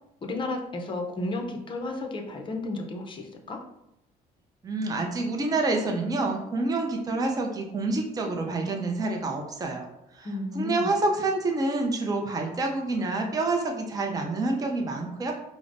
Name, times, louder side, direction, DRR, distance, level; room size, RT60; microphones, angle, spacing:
voice 1, 0.2-3.6 10.2-10.9, left 2 dB, 30° left, 3 dB, 0.5 m, -33 dB
voice 2, 4.6-9.9 10.1-10.3 10.5-15.3, right 2 dB, 20° right, 2 dB, 0.5 m, -27 dB
4.8 x 2.0 x 2.5 m, 0.85 s
cardioid pair, 110°, 17 cm